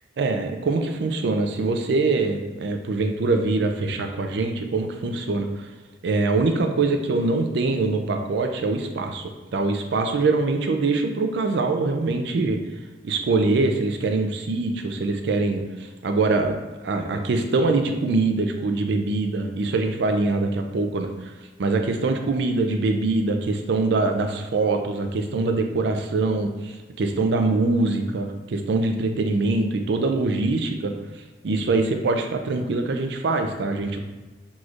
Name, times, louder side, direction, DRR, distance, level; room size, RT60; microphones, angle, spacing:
voice 1, 0.2-5.7 6.0-12.6 13.0-16.6 16.8-21.3 21.6-30.9 31.4-34.0, right 3 dB, 70° right, 5 dB, 0.4 m, -23 dB
6.1 x 3.1 x 2.4 m, 1.2 s
head